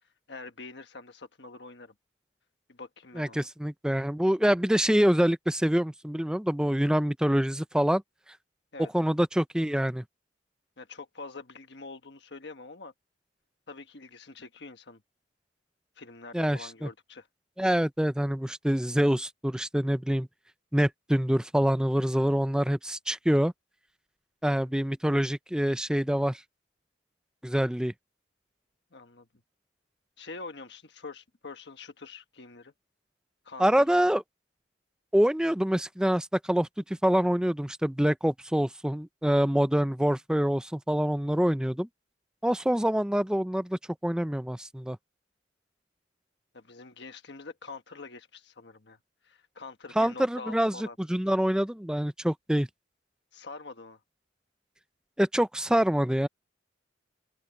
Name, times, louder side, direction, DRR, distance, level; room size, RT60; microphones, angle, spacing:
voice 1, 0.3-1.9 2.7-3.5 8.7-8.9 10.8-12.9 13.7-15.0 16.0-17.3 24.4-24.7 28.9-29.3 30.2-32.7 33.4-33.9 46.5-49.0 49.2-51.0 53.3-54.0, left 3 dB, 65° left, 1.4 m, -45 dB
voice 2, 3.2-8.0 8.9-10.0 16.3-16.9 17.6-20.3 20.7-23.5 24.4-26.4 27.4-27.9 33.6-34.2 35.1-41.9 42.4-45.0 50.0-52.7 55.2-56.3, equal, 5° right, 0.5 m, -26 dB
open air
head